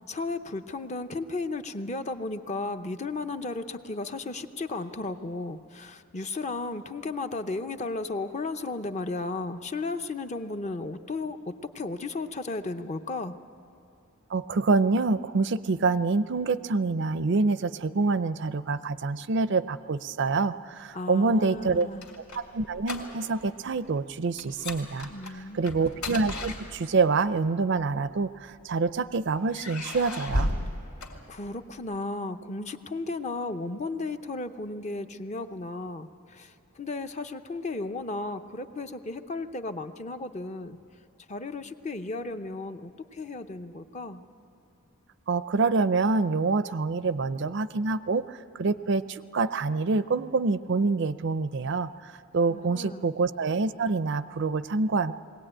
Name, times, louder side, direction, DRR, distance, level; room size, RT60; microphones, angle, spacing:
voice 1, 0.0-13.3 20.9-22.1 25.0-25.8 31.3-40.8 41.3-44.2 52.5-53.1, left 3 dB, 30° left, 8 dB, 0.6 m, -34 dB
voice 2, 14.3-21.9 22.4-25.1 25.6-30.5 45.3-51.9 52.3-55.1, right 4 dB, 55° right, 14 dB, 0.5 m, -26 dB
sound 1, 21.6-23.5 23.7-24.0 24.4-27.2 28.0-28.9 29.5-31.8, left 1 dB, 85° left, 2.9 m, -34 dB
21.5 x 17.5 x 8.8 m, 2.6 s
head